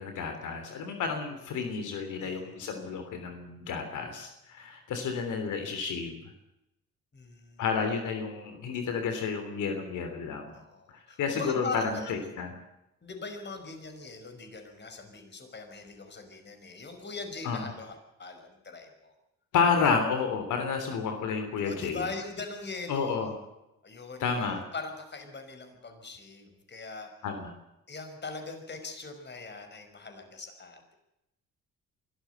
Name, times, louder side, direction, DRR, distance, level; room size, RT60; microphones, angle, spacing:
voice 1, 0.0-6.2 7.6-10.6 11.2-12.5 17.5-17.6 19.5-22.0 22.9-23.3 24.2-24.7 27.2-27.5, left 5 dB, 80° left, 6 dB, 3.4 m, -30 dB
voice 2, 2.2-2.6 7.1-7.7 10.5-12.4 13.0-19.1 21.6-23.3 23.8-27.1 27.9-30.9, left 3 dB, 35° left, 6 dB, 5.4 m, -41 dB
24.0 x 13.5 x 8.1 m, 0.88 s
cardioid pair, 90°, 30 cm